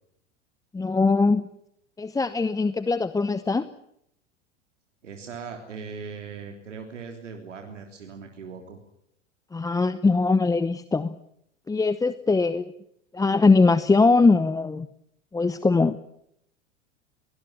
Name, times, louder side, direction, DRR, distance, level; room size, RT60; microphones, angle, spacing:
voice 1, 0.7-1.5 2.0-3.7 9.5-11.1 11.7-12.7 13.1-14.9 15.3-16.0, left 3 dB, 10° left, 13 dB, 0.9 m, -21 dB
voice 2, 5.0-8.8, right 5 dB, 80° right, 4 dB, 3.4 m, -39 dB
23.0 x 20.0 x 9.7 m, 0.76 s
hypercardioid pair, 95°, 36 cm